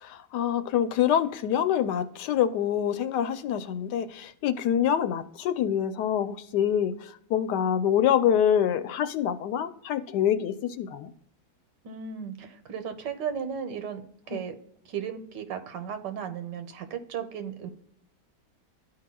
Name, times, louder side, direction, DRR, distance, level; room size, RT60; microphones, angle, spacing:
voice 1, 0.0-11.1 14.3-14.4, left 9 dB, 80° left, 11 dB, 1.2 m, -26 dB
voice 2, 11.8-14.0 14.3-14.5 14.9-17.7, right 7 dB, 85° right, 9 dB, 1.6 m, -35 dB
12.5 x 4.8 x 2.2 m, 0.70 s
omnidirectional pair, 1.8 m